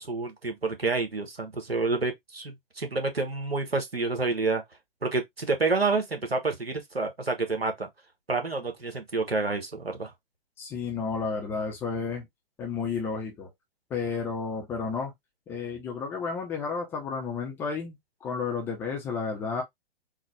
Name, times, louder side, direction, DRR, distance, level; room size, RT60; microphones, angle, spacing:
voice 1, 0.0-4.6 5.0-7.9 8.3-10.1, right 3 dB, 85° right, 1.3 m, -28 dB
voice 2, 10.6-12.3 12.6-13.5 13.9-15.1 15.5-19.6, left 5 dB, 10° left, 0.4 m, -32 dB
3.9 x 2.2 x 3.2 m
figure-of-eight pair, 120°, 29 cm